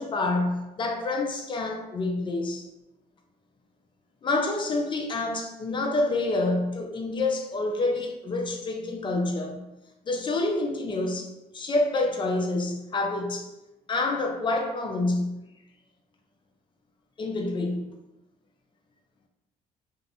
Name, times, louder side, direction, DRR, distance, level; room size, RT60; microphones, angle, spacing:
voice 1, 0.0-2.7 4.2-9.6 10.1-13.5 13.9-15.4 17.2-17.8, left 2 dB, 30° left, 0.4 m, -27 dB
2.6 x 2.0 x 2.7 m
cardioid pair, 110°, 17 cm